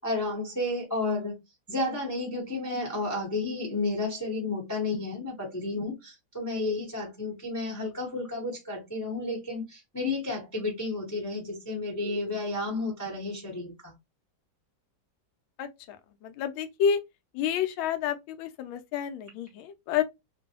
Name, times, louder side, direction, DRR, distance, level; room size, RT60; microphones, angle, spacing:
voice 1, 0.0-1.4 1.7-13.9, left 2 dB, 15° left, 0.6 m, -32 dB
voice 2, 15.6-16.0 16.2-17.0 17.3-20.0, left 8 dB, 80° left, 1.3 m, -29 dB
3.0 x 2.6 x 2.8 m
omnidirectional pair, 2.2 m